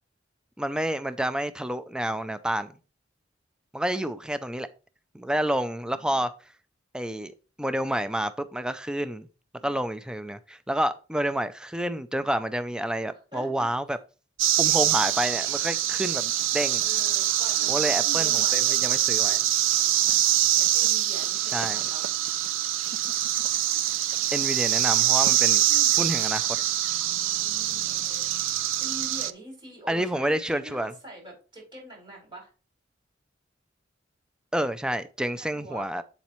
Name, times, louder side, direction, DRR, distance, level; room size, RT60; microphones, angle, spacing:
voice 1, 0.6-2.7 3.7-4.7 5.1-6.3 6.9-9.3 9.6-14.0 14.6-16.8 17.7-19.4 21.5-21.8 24.3-25.6 26.0-26.6 29.9-30.9 34.5-36.0, right 1 dB, 5° right, 0.4 m, -29 dB
voice 2, 13.0-13.7 16.8-22.0 27.0-32.5 35.4-36.0, right 1 dB, 25° right, 4.9 m, -46 dB
sound 1, 14.4-29.3, right 13 dB, 80° right, 0.5 m, -24 dB
8.1 x 7.3 x 3.1 m
head